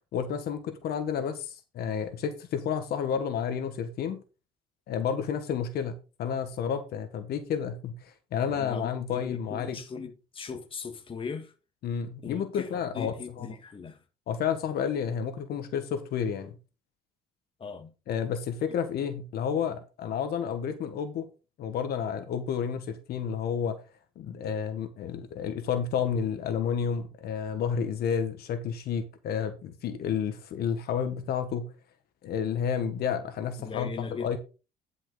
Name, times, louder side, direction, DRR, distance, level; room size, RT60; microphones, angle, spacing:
voice 1, 0.1-4.2 4.9-9.8 11.8-13.5 14.3-16.5 18.1-21.3 21.6-23.7 24.1-31.7 32.2-34.4, left 7 dB, 70° left, 1.6 m, -31 dB
voice 2, 8.3-11.5 12.2-14.0 17.6-17.9 33.6-34.4, left 5 dB, 30° left, 1.7 m, -39 dB
10.5 x 5.9 x 4.1 m
cardioid pair, 110°, 17 cm